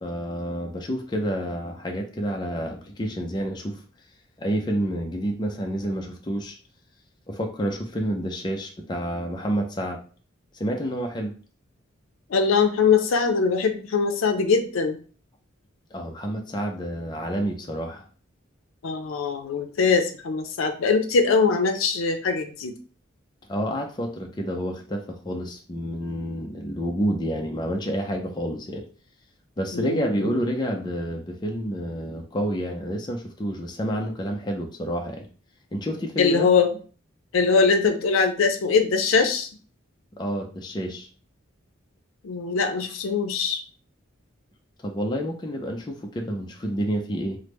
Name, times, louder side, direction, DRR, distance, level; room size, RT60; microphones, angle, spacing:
voice 1, 0.0-3.8 4.4-6.6 7.3-10.0 10.5-11.3 15.9-18.0 23.5-28.9 29.6-35.3 35.7-36.5 40.2-41.1 44.8-47.4, equal, 20° left, 2 dB, 0.4 m, -29 dB
voice 2, 12.3-15.0 18.8-22.7 29.7-30.4 36.2-36.7 37.3-39.5 42.2-43.6, left 5 dB, 85° left, 7 dB, 0.5 m, -22 dB
3.4 x 2.1 x 3.0 m, 0.40 s
head